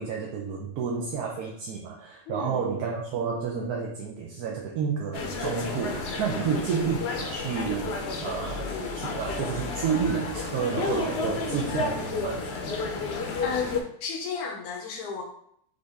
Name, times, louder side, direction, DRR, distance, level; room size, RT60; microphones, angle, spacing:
voice 1, 0.0-12.4, right 6 dB, 85° right, -1 dB, 1.2 m, -30 dB
voice 2, 2.3-2.6 6.3-6.6 13.4-15.2, left 5 dB, 85° left, 1 dB, 1.2 m, -33 dB
sound 1, 5.1-13.8, left 4 dB, 60° left, 0.7 m, -31 dB
5.4 x 2.6 x 3.3 m, 0.68 s
omnidirectional pair, 1.6 m